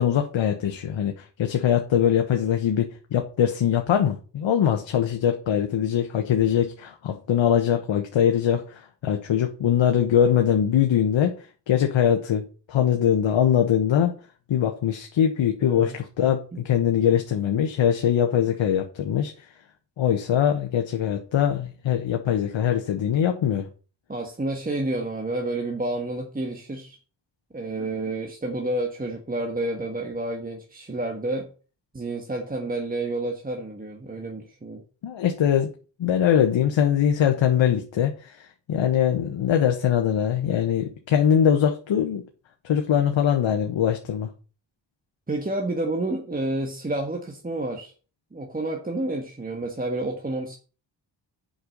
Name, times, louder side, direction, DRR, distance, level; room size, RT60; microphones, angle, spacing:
voice 1, 0.0-11.3 11.7-12.4 12.7-14.1 14.5-19.3 20.0-23.7 35.0-35.7 36.0-38.4 38.7-42.2 42.7-44.3, left 9 dB, 80° left, 4 dB, 1.3 m, -22 dB
voice 2, 15.6-16.0 16.5-16.6 24.1-27.0 27.5-31.5 31.9-34.8 45.3-47.9 48.3-50.6, right 2 dB, 20° right, 2 dB, 1.5 m, -29 dB
7.8 x 5.7 x 6.6 m, 0.37 s
cardioid pair, 100°, 46 cm